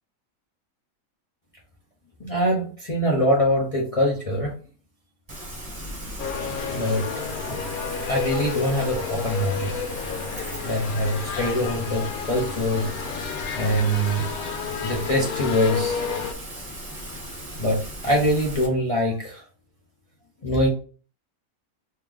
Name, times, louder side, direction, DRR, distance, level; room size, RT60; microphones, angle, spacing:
voice 1, 2.2-4.5 6.7-7.6 8.0-9.7 10.6-12.9 13.6-14.2 14.8-16.0 17.6-19.4 20.4-20.7, equal, 35° left, -3 dB, 0.6 m, -24 dB
Rain, 5.3-18.7, right 1 dB, 30° right, 0.9 m, -37 dB
sound 1, 6.2-16.3, left 6 dB, 85° left, 1.1 m, -31 dB
3.2 x 2.8 x 3.6 m, 0.40 s
omnidirectional pair, 1.5 m